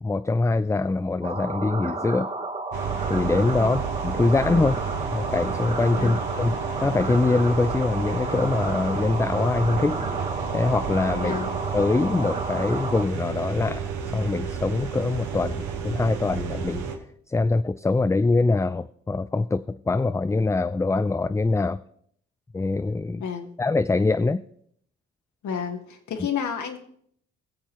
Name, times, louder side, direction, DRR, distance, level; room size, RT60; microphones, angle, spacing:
voice 1, 0.0-2.3 3.1-4.8 5.1-6.5 6.8-10.0 10.5-11.3 11.7-16.9 17.3-21.8 22.5-23.2 23.6-24.4, left 3 dB, 10° left, 10 dB, 0.3 m, -23 dB
sound 1, 1.2-13.1, right 2 dB, 25° right, 1.3 m, -32 dB
sound 2, 2.7-17.0, right 6 dB, 75° right, 1.4 m, -31 dB
voice 2, 11.2-11.5 23.2-23.5 25.4-26.8, left 7 dB, 70° left, 4 dB, 1.5 m, -30 dB
19.0 x 7.2 x 3.0 m, 0.66 s
supercardioid pair, 50°, 30 cm